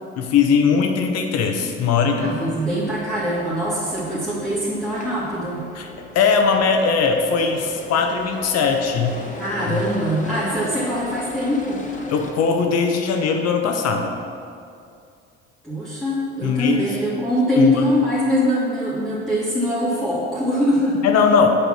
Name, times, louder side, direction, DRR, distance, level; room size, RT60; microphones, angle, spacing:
voice 1, 0.2-2.3 5.7-5.9 6.1-9.2 9.7-9.8 12.1-14.1 16.4-16.9 17.6-17.8 21.0-21.5, left 5 dB, 55° left, 4 dB, 1.0 m, -19 dB
voice 2, 2.2-5.6 9.4-11.8 15.6-21.1, equal, ahead, -10 dB, 2.0 m, -22 dB
sound 1, 2.3-12.3, left 2 dB, 25° left, 1.4 m, -38 dB
5.7 x 5.5 x 6.3 m, 2.4 s
hypercardioid pair, 55°, 31 cm